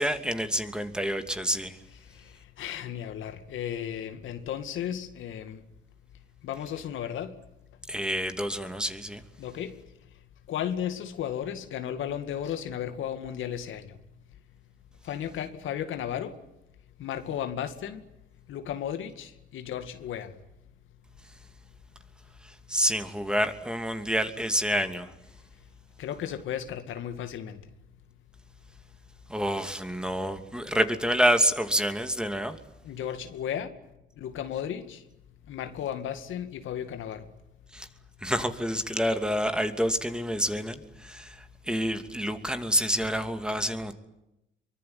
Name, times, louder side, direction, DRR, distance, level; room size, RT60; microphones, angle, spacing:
voice 1, 0.0-1.8 7.9-9.2 22.4-25.1 29.3-32.6 37.7-37.9 38.2-43.9, equal, 5° right, 2.7 m, -28 dB
voice 2, 2.6-5.6 6.4-7.3 9.4-9.7 10.5-13.9 15.0-16.4 17.0-18.0 18.5-20.3 26.0-27.6 32.8-33.7 34.2-35.0 35.5-37.2, left 9 dB, 80° left, 2.2 m, -34 dB
24.0 x 24.0 x 9.5 m
cardioid pair, 90°, 20 cm